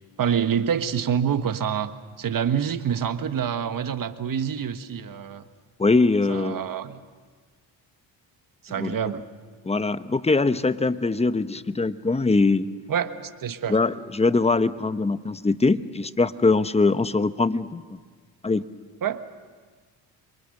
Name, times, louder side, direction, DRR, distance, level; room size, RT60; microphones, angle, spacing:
voice 1, 0.2-1.9 2.2-5.4 6.3-7.0 8.6-9.2 12.9-13.8 19.0-19.2, right 8 dB, 50° right, 10 dB, 1.4 m, -26 dB
voice 2, 5.8-6.6 8.8-8.9 9.6-12.7 13.7-18.0 18.4-18.6, left 3 dB, 15° left, 13 dB, 0.9 m, -22 dB
27.5 x 23.5 x 6.6 m, 1.5 s
cardioid pair, 80°, 42 cm